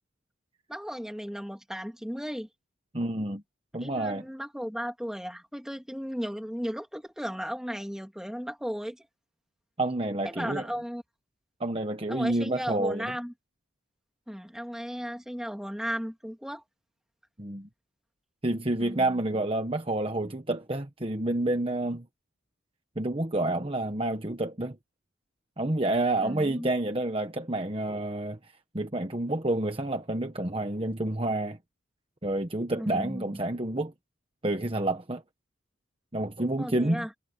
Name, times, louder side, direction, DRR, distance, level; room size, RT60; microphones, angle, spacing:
voice 1, 0.7-2.5 3.8-9.1 10.2-11.0 12.1-13.3 14.3-16.6 18.8-19.4 26.2-26.7 32.8-33.4 36.6-37.1, equal, 5° right, 2.4 m, -35 dB
voice 2, 2.9-3.4 3.7-4.2 9.8-10.6 11.6-13.1 17.4-17.7 18.4-22.1 23.0-24.8 25.6-28.4 28.7-31.6 32.2-33.9 34.4-35.2 36.1-37.1, right 2 dB, 25° right, 1.2 m, -29 dB
head